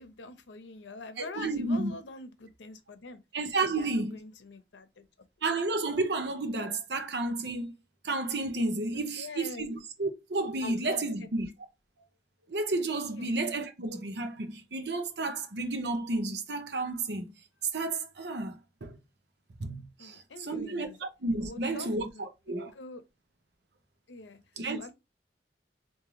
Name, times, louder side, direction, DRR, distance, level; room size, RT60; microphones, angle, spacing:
voice 1, 0.0-3.2 3.6-5.0 8.9-9.7 10.6-11.0 13.1-13.3 20.0-21.0 21.4-22.3 22.7-23.0 24.1-24.4 24.8-24.9, left 3 dB, 85° left, 0.7 m, -44 dB
voice 2, 1.2-1.9 3.3-4.2 5.4-7.7 8.0-11.5 12.5-17.3 17.7-18.9 19.6-22.7 24.6-24.9, right 2 dB, 70° right, 0.7 m, -32 dB
3.7 x 2.6 x 3.0 m
head